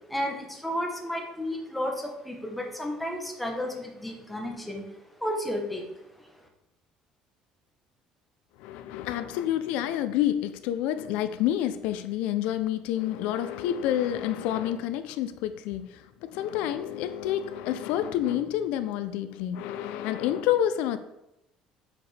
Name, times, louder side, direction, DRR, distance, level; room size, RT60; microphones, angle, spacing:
voice 1, 0.1-4.8 5.2-5.8, left 1 dB, 5° left, 0.9 m, -32 dB
voice 2, 8.6-21.0, left 11 dB, 80° left, 0.4 m, -28 dB
8.1 x 5.1 x 3.3 m
cardioid pair, 175°, 2 cm